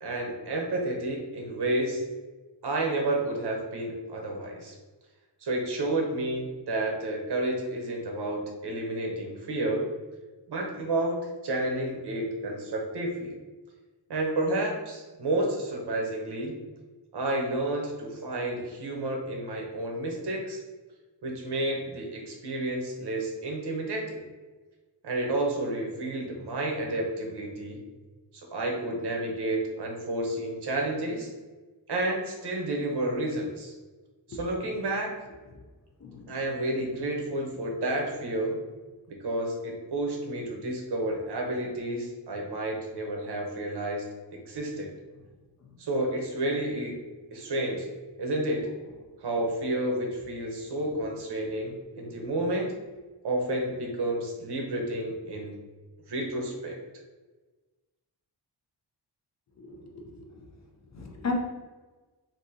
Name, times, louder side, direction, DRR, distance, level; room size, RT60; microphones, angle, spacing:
voice 1, 0.0-2.0 2.6-4.7 5.4-9.9 10.5-11.2 11.4-13.3 14.1-16.6 17.1-20.6 21.2-24.2 25.0-27.8 28.3-31.3 31.9-33.7 34.3-35.1 36.3-38.6 39.1-44.9 45.8-47.0 47.3-47.9 48.2-48.7 49.2-52.7 53.2-55.6 56.1-56.8, right 1 dB, 70° right, 0 dB, 0.8 m, -30 dB
voice 2, 36.0-36.3 51.5-51.6 52.0-52.3 59.6-60.4 60.9-61.3, left 4 dB, 40° left, 1 dB, 0.5 m, -37 dB
3.5 x 2.6 x 2.7 m, 1.3 s
wide cardioid pair, 150°, 42 cm